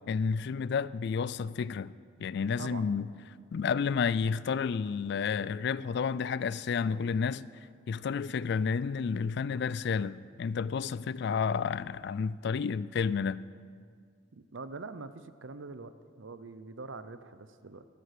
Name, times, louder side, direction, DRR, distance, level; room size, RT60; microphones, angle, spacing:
voice 1, 0.1-1.9 2.2-3.1 3.5-7.5 7.9-13.4, left 6 dB, 60° left, 0.3 m, -31 dB
voice 2, 2.6-2.9 14.3-17.9, right 3 dB, 70° right, 0.7 m, -44 dB
13.0 x 12.0 x 6.7 m
head